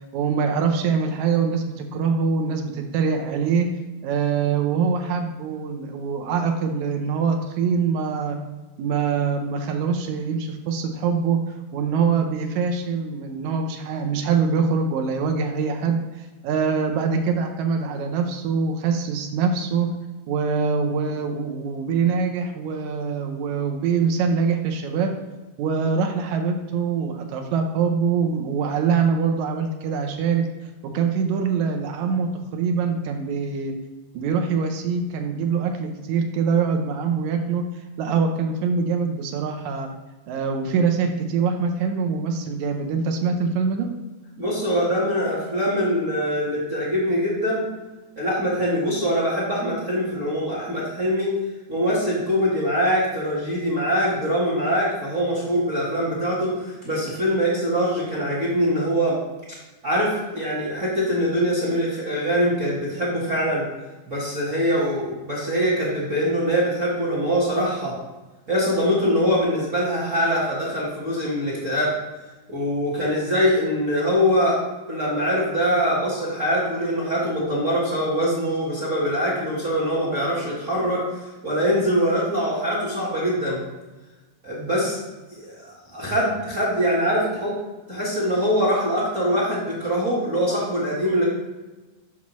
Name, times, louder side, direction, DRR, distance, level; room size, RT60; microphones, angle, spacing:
voice 1, 0.1-3.7 4.0-8.4 8.8-11.4 11.7-19.9 20.3-25.1 25.6-30.5 30.8-33.7 34.1-37.7 38.0-39.9 40.3-43.9, right 5 dB, 75° right, 4 dB, 1.9 m, -24 dB
voice 2, 44.4-47.6 48.2-51.3 51.7-59.1 59.8-63.6 64.1-67.9 68.5-71.9 72.5-74.6 74.9-83.6 84.4-85.0 85.3-87.5 87.9-91.3, equal, 40° right, -6 dB, 1.1 m, -23 dB
7.3 x 5.9 x 3.0 m, 1.2 s
omnidirectional pair, 3.6 m